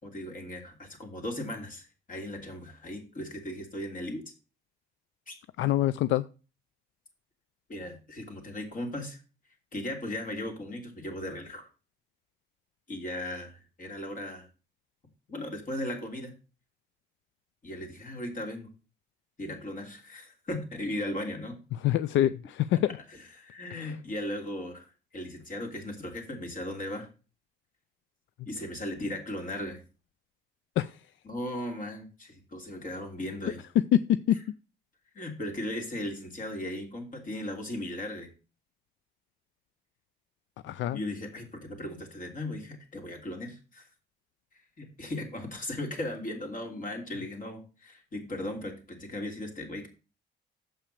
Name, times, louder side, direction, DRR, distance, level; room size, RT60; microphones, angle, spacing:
voice 1, 0.0-4.2 5.3-5.4 7.7-9.2 9.7-11.7 12.9-14.5 15.3-16.3 17.6-18.7 19.4-21.6 22.7-22.8 23.1-27.1 28.4-29.8 31.2-33.6 35.1-38.3 40.6-43.9 44.8-49.9, left 1 dB, 45° left, 3.1 m, -37 dB
voice 2, 5.6-6.3 21.8-23.0 30.8-31.0 33.8-34.4 40.6-41.0, left 12 dB, 75° left, 0.4 m, -25 dB
7.1 x 5.8 x 6.8 m
cardioid pair, 90°, 20 cm